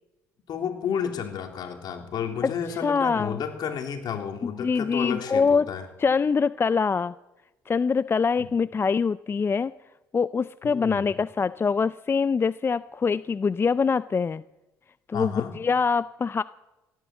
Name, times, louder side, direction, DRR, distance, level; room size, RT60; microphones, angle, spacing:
voice 1, 0.5-5.8 8.4-8.5 10.6-11.1 15.1-15.6, left 7 dB, 60° left, 4 dB, 3.2 m, -31 dB
voice 2, 2.4-3.4 4.4-5.7 6.0-7.1 7.7-9.7 10.1-14.4 15.1-16.4, left 5 dB, 30° left, 16 dB, 0.4 m, -24 dB
17.0 x 11.0 x 7.6 m, 1.1 s
supercardioid pair, 65°, 8 cm